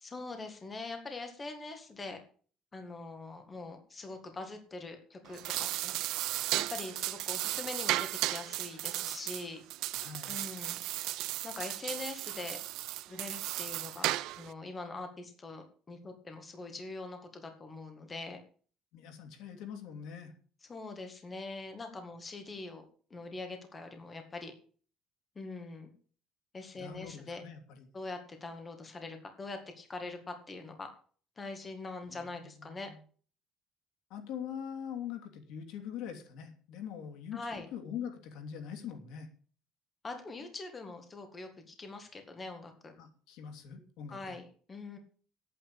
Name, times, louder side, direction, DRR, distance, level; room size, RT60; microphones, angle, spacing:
voice 1, 0.0-2.2 2.7-5.9 6.5-9.6 10.3-10.8 11.4-12.6 13.1-14.1 14.4-18.4 20.7-22.9 23.1-24.5 25.4-25.9 26.5-27.4 27.9-30.9 31.4-32.9 37.3-37.7 40.0-43.0 44.1-45.0, left 3 dB, 20° left, 5 dB, 2.0 m, -43 dB
sound 1, 5.2-14.5, right 16 dB, 75° right, 0.7 m, -35 dB
voice 2, 9.9-10.4 18.9-20.3 26.7-27.9 32.1-32.5 32.8-32.9 34.1-39.3 43.0-44.4, left 8 dB, 80° left, 5 dB, 3.0 m, -43 dB
9.6 x 9.1 x 8.6 m, 0.43 s
cardioid pair, 175°, 0 cm